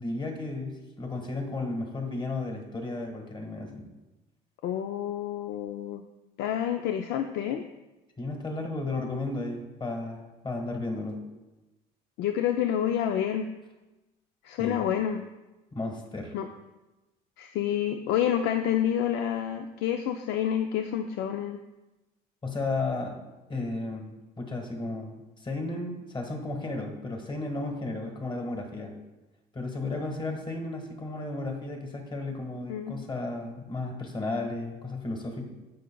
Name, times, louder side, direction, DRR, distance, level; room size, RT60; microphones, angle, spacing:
voice 1, 0.0-3.8 8.2-11.2 14.6-14.8 15.7-16.3 22.4-23.2 23.5-28.9 29.5-35.4, left 2 dB, 30° left, 3 dB, 1.5 m, -34 dB
voice 2, 4.6-6.0 6.4-7.7 12.2-13.5 14.4-15.2 16.3-16.5 17.4-21.6 32.7-32.9, left 10 dB, 85° left, 7 dB, 0.5 m, -28 dB
15.0 x 5.3 x 2.3 m, 1.1 s
cardioid pair, 110°, 17 cm